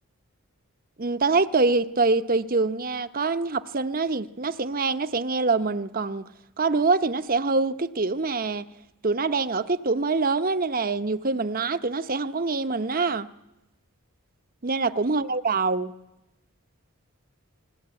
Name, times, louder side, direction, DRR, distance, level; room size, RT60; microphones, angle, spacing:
voice 1, 1.0-6.3 6.6-8.7 9.0-13.3 14.6-15.9, right 3 dB, 40° right, 0.9 m, -25 dB
27.5 x 21.0 x 9.0 m
head